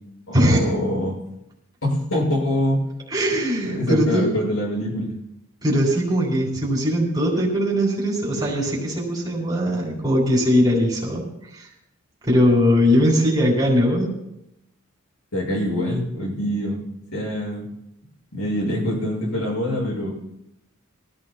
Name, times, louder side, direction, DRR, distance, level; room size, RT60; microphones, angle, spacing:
voice 1, 0.3-1.1 1.8-2.9 3.6-5.1 15.3-16.8 17.1-17.7 18.3-20.1, left 1 dB, 90° left, -2 dB, 6.6 m, -24 dB
voice 2, 3.1-4.3 5.6-11.2 11.5-11.7 12.2-14.1, equal, 20° right, -3 dB, 4.0 m, -20 dB
23.5 x 15.0 x 2.3 m, 0.84 s
head